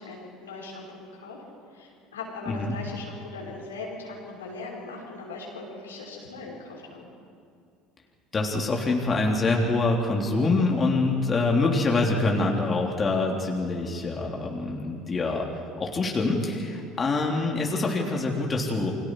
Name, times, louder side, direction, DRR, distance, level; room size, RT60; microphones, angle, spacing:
voice 1, 0.0-1.4 1.7-7.1, left 3 dB, 85° left, -3 dB, 5.4 m, -39 dB
voice 2, 8.3-15.5 15.8-18.9, left 3 dB, 30° left, -1 dB, 3.6 m, -25 dB
29.5 x 24.5 x 4.9 m, 2.3 s
figure-of-eight pair, 65°, 0 cm